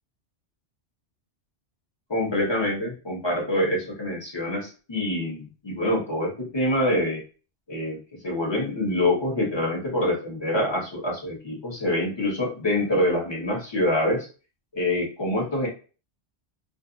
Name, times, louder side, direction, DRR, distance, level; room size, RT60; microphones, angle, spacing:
voice 1, 2.1-7.2 7.7-14.3 14.7-15.7, left 1 dB, 25° left, -3 dB, 1.0 m, -25 dB
2.6 x 2.4 x 2.4 m, 0.35 s
omnidirectional pair, 1.2 m